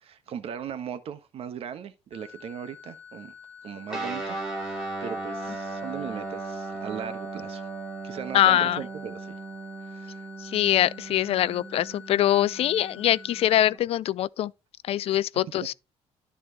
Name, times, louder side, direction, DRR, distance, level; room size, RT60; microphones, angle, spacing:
voice 1, 0.0-3.3 3.6-7.7 8.0-9.4 9.8-10.3 15.1-15.2, right 8 dB, 55° right, 1.3 m, -38 dB
sound 1, 2.1-13.5, left 7 dB, 25° left, 5.9 m, -48 dB
Guitar, 3.9-13.8, right 3 dB, 5° right, 4.2 m, -37 dB
voice 2, 8.3-8.8 10.4-14.5 14.9-15.7, left 12 dB, 55° left, 0.4 m, -23 dB
12.0 x 4.4 x 4.1 m
cardioid pair, 135°, 12 cm